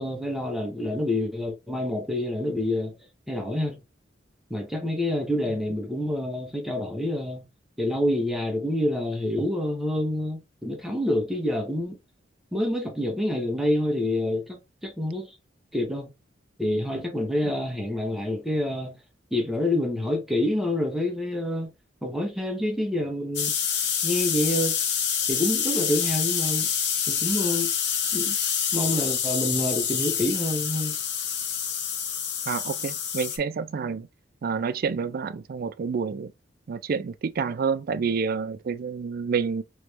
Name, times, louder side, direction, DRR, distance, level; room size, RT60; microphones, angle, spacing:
voice 1, 0.0-2.9 3.3-3.8 4.5-7.5 7.8-12.0 12.5-15.3 15.7-16.1 16.6-19.0 19.3-21.7 22.0-23.5 24.0-24.8 25.3-26.7 27.1-27.7 28.1-28.3 28.7-30.9, left 1 dB, ahead, 0.8 m, -27 dB
sound 1, 23.4-33.4, left 8 dB, 65° left, 0.8 m, -27 dB
voice 2, 32.5-34.1 34.4-36.3 36.7-39.6, right 5 dB, 50° right, 0.4 m, -28 dB
3.1 x 3.1 x 3.2 m
head